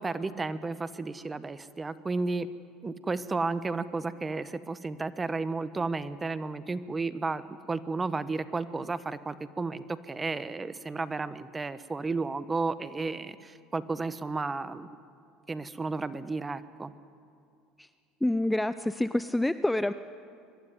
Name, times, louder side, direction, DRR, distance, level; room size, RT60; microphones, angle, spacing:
voice 1, 0.0-2.5 2.8-14.9 15.5-16.9, right 3 dB, 20° right, 14 dB, 1.0 m, -33 dB
voice 2, 18.2-19.9, left 1 dB, 5° left, 13 dB, 0.5 m, -27 dB
23.5 x 12.0 x 9.6 m, 2.4 s
hypercardioid pair, 85°, 0 cm